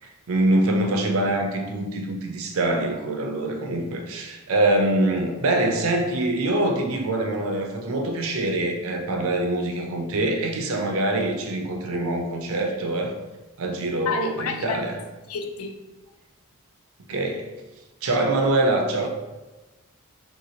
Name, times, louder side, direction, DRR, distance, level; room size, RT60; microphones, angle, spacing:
voice 1, 0.0-13.1 13.6-15.0 17.1-17.5 18.0-19.1, right 2 dB, 70° right, 3 dB, 0.5 m, -24 dB
voice 2, 14.1-14.8 15.3-15.7, left 5 dB, 80° left, 5 dB, 0.4 m, -29 dB
3.4 x 2.9 x 2.7 m, 1.1 s
head